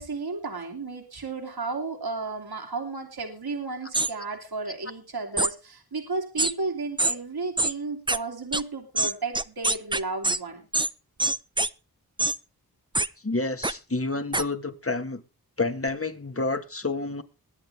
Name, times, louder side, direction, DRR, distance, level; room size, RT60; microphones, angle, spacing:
voice 1, 0.0-10.6, right 3 dB, 75° right, 2.9 m, -33 dB
sound 1, 3.9-4.1 5.4-5.5 6.4-6.5 7.0-7.1 7.6-7.7 8.1-8.2 8.5-8.6 9.0-10.4 10.7-10.9 11.2-11.7 12.2-12.4 12.9-13.1 13.6-13.7 14.3-14.4, right 2 dB, 10° right, 0.7 m, -24 dB
voice 2, 13.2-15.2 15.6-17.2, left 3 dB, 35° left, 1.7 m, -29 dB
21.5 x 9.2 x 3.5 m
cardioid pair, 40°, 38 cm